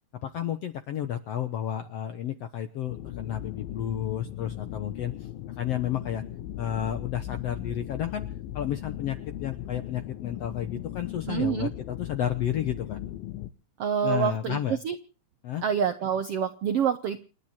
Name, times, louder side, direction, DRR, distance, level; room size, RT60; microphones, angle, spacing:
voice 1, 0.2-5.3 5.6-6.2 6.6-8.3 8.5-13.0 14.0-14.8 15.4-15.6, left 10 dB, 70° left, 9 dB, 1.5 m, -31 dB
sound 1, 2.9-13.5, left 13 dB, 90° left, 2.8 m, -38 dB
voice 2, 11.3-11.7 13.8-14.6 14.8-14.9 15.6-17.2, right 7 dB, 75° right, 9 dB, 1.4 m, -26 dB
29.0 x 9.9 x 4.4 m, 0.37 s
omnidirectional pair, 4.0 m